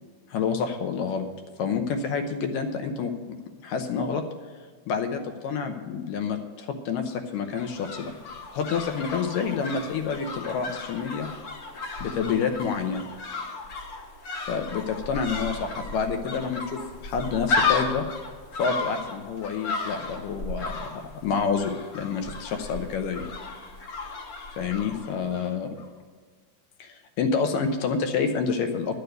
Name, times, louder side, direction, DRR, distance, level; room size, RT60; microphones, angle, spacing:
voice 1, 0.3-1.3 1.6-3.1 3.6-4.2 4.9-8.1 8.5-11.3 12.0-13.1 14.5-18.1 18.6-23.2 24.6-25.8 26.8-29.0, left 6 dB, 75° left, 6 dB, 2.3 m, -28 dB
sound 1, 7.3-25.5 25.8-25.9, left 4 dB, 60° left, 1.6 m, -34 dB
12.0 x 6.8 x 8.0 m, 1.5 s
omnidirectional pair, 4.2 m